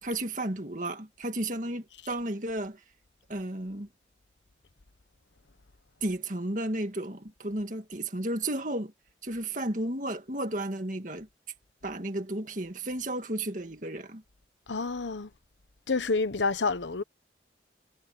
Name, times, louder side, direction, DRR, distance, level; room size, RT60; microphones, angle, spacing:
voice 1, 0.0-2.8 3.3-3.9 6.0-8.9 9.2-11.3 11.8-14.2, right 1 dB, 45° right, 2.1 m, -33 dB
voice 2, 14.7-15.3 15.9-17.0, left 4 dB, 85° left, 1.0 m, -29 dB
head